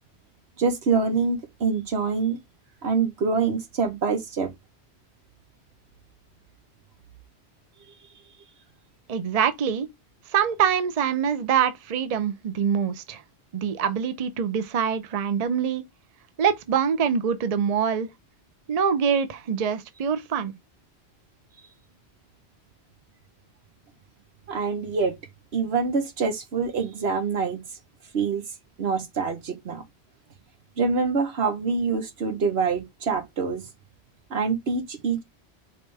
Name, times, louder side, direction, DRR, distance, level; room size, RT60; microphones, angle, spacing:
voice 1, 0.6-2.4 2.8-4.5 24.5-25.1 25.5-27.6 28.1-28.4 28.8-29.8 30.8-33.6 34.3-35.2, right 5 dB, 75° right, 1.3 m, -25 dB
voice 2, 9.1-9.9 10.3-13.2 13.5-15.8 16.4-18.1 18.7-20.5, right 7 dB, 45° right, 0.6 m, -24 dB
4.8 x 3.3 x 3.3 m
omnidirectional pair, 1.1 m